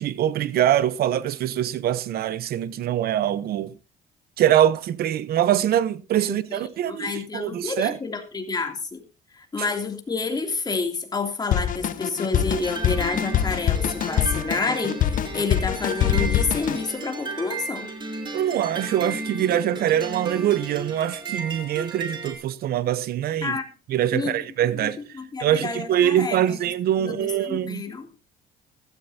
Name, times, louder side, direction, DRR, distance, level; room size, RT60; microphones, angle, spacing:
voice 1, 0.0-3.7 4.4-8.0 18.3-23.6 23.9-25.0 25.4-27.8, right 11 dB, 65° right, 0.9 m, -23 dB
voice 2, 6.2-6.6 6.9-9.0 9.3-17.9 23.4-23.6 24.1-24.3 24.8-26.6 27.0-28.1, left 4 dB, 25° left, 3.0 m, -29 dB
Drum kit, 11.5-16.8, left 10 dB, 50° left, 0.8 m, -24 dB
sound 1, 12.3-22.3, right 3 dB, 25° right, 3.5 m, -34 dB
15.0 x 14.0 x 2.8 m
cardioid pair, 110°, 17 cm